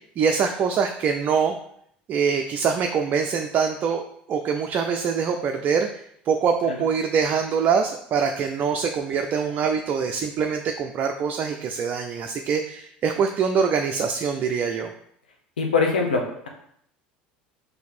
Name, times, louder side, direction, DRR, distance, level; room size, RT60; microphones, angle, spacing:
voice 1, 0.2-1.5 2.1-4.0 4.3-14.9, right 6 dB, 40° right, 4 dB, 0.4 m, -24 dB
voice 2, 15.6-16.5, left 4 dB, 85° left, 2 dB, 0.6 m, -23 dB
4.0 x 2.7 x 4.2 m, 0.68 s
hypercardioid pair, 70°, 5 cm